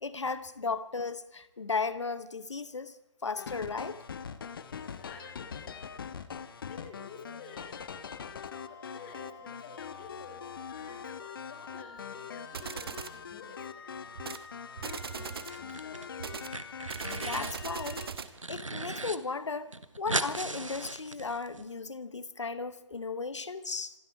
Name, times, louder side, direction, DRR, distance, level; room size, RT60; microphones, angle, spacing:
voice 1, 0.0-2.9 3.2-4.0 17.2-18.0 18.5-23.9, left 4 dB, 65° left, 1.1 m, -35 dB
sound 1, 3.4-18.1, left 6 dB, 45° left, 1.2 m, -43 dB
voice 2, 4.7-5.7 6.7-7.7 8.7-14.0 15.1-16.0, left 5 dB, 30° left, 4.6 m, -51 dB
sound 2, 12.5-13.2 14.2-14.5 14.8-15.6 16.2-18.4, right 6 dB, 50° right, 1.2 m, -39 dB
sound 3, 15.4-16.1 16.3-17.6 18.0-19.2 19.4-19.5 19.7-21.6, right 2 dB, 85° right, 1.3 m, -36 dB
27.0 x 11.5 x 4.6 m
figure-of-eight pair, 140°, 16 cm